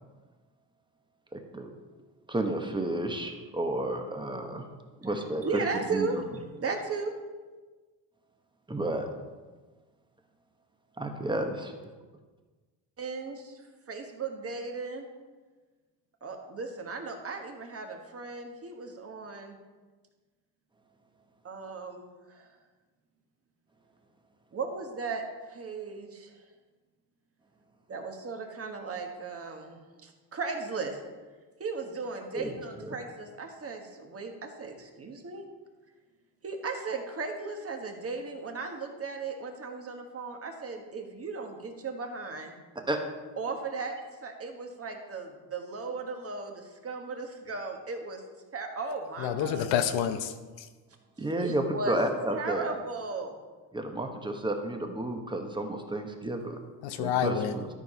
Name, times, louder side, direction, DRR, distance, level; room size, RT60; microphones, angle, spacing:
voice 1, 1.3-1.7 2.3-4.7 5.0-5.6 5.9-6.1 8.7-9.1 11.0-11.7 32.3-32.5 42.8-43.0 51.2-52.7 53.7-56.6 57.0-57.3, right 1 dB, 10° right, 1.1 m, -31 dB
voice 2, 5.4-6.2 6.6-7.1 13.0-15.1 16.2-19.6 21.4-22.6 24.5-26.5 27.9-31.0 31.6-35.4 36.4-42.5 43.4-48.2 48.5-49.7 51.4-52.0 52.3-53.4, right 4 dB, 30° right, 1.4 m, -36 dB
voice 3, 49.2-50.7 56.8-57.6, left 9 dB, 80° left, 0.9 m, -29 dB
12.5 x 4.6 x 5.5 m
cardioid pair, 115°, 44 cm